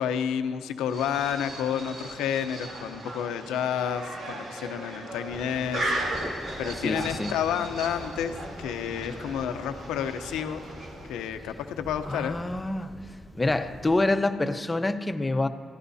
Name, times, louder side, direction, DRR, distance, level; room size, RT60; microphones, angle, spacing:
voice 1, 0.0-5.9 6.2-10.6 11.1-12.4, left 8 dB, 90° left, 8 dB, 0.8 m, -30 dB
sound 1, 0.9-11.3, right 1 dB, 75° right, 3.2 m, -37 dB
sound 2, 5.3-14.1, left 1 dB, ahead, 2.0 m, -44 dB
voice 2, 6.8-7.3 12.0-12.9 13.3-15.5, left 2 dB, 25° left, 8 dB, 1.0 m, -26 dB
23.5 x 16.0 x 2.8 m, 2.2 s
supercardioid pair, 45°, 0 cm